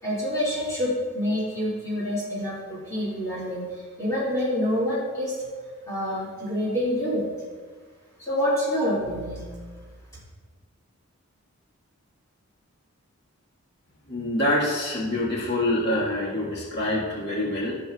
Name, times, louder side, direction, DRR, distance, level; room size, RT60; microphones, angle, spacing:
voice 1, 0.0-5.4 5.9-7.3 8.2-9.4, equal, 15° left, -9 dB, 2.5 m, -27 dB
voice 2, 14.1-17.7, left 1 dB, 50° left, -5 dB, 1.9 m, -26 dB
15.5 x 7.0 x 2.4 m, 1.5 s
head